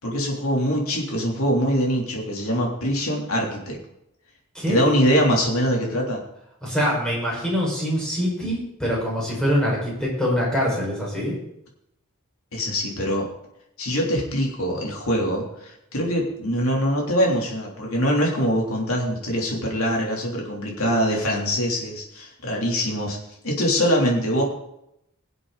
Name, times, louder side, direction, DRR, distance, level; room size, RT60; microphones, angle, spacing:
voice 1, 0.0-3.8 4.7-6.2 12.5-13.3 13.8-23.2 23.4-24.4, equal, 65° left, -1 dB, 3.5 m, -23 dB
voice 2, 4.5-4.9 6.6-11.4, equal, 5° left, -5 dB, 5.6 m, -24 dB
22.0 x 7.9 x 4.2 m, 0.81 s
head